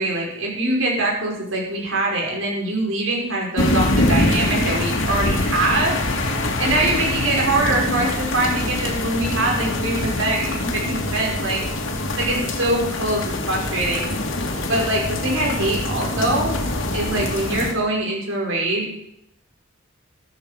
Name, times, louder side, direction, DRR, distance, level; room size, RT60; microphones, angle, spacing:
voice 1, 0.0-5.9 6.6-11.6 12.2-14.1 14.7-16.5 16.9-18.9, right 2 dB, 90° right, -2 dB, 5.4 m, -23 dB
sound 1, 3.6-17.7, left 1 dB, 75° left, 2.4 m, -24 dB
13.5 x 13.0 x 5.1 m, 0.77 s
head